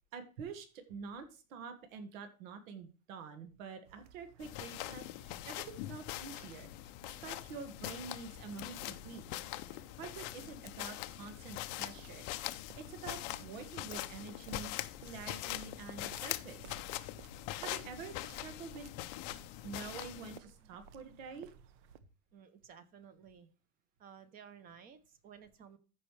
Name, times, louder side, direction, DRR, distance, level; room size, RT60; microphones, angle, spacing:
voice 1, 0.1-9.3 9.7-16.7 17.6-18.9 19.6-21.5, right 5 dB, 80° right, 7 dB, 1.8 m, -47 dB
sound 1, 3.8-22.0, right 8 dB, 60° right, 0.9 m, -58 dB
sound 2, 4.4-20.4, left 16 dB, 35° left, 0.5 m, -43 dB
voice 2, 22.3-23.5 24.0-25.8, right 7 dB, 20° right, 13 dB, 0.7 m, -55 dB
14.0 x 5.6 x 3.2 m, 0.35 s
supercardioid pair, 175°, 39 cm